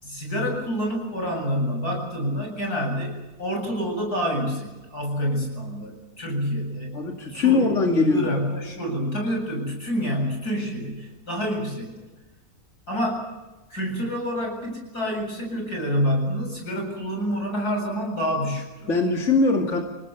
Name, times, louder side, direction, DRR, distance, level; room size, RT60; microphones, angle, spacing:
voice 1, 0.0-7.0 7.3-12.1 12.9-13.2 13.7-18.9, equal, 90° left, 2 dB, 8.5 m, -28 dB
voice 2, 6.9-8.3 18.9-19.8, left 3 dB, 50° left, 1 dB, 2.7 m, -21 dB
29.5 x 18.5 x 7.1 m, 1.1 s
omnidirectional pair, 1.6 m